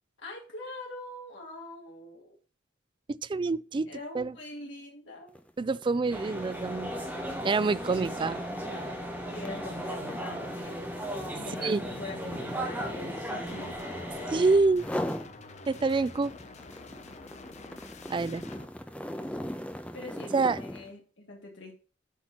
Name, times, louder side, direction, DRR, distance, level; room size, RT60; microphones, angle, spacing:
voice 1, 0.2-2.4 3.9-5.3 9.3-10.9 11.3-13.8 15.8-16.0 19.1-19.6 19.9-21.7, left 2 dB, 85° left, 2.7 m, -44 dB
voice 2, 3.2-3.9 4.1-4.4 5.6-6.9 7.4-8.4 11.6-11.8 14.3-14.9 15.7-16.3 18.1-18.4 20.3-20.6, right 3 dB, 25° right, 0.3 m, -26 dB
sound 1, 5.3-5.5 5.8-14.3 14.7-15.3 15.7-20.9, equal, 5° left, 0.9 m, -39 dB
sound 2, 6.1-14.6, equal, 10° right, 1.7 m, -36 dB
sound 3, 13.5-18.7, left 3 dB, 40° left, 0.8 m, -48 dB
8.3 x 4.4 x 5.9 m
head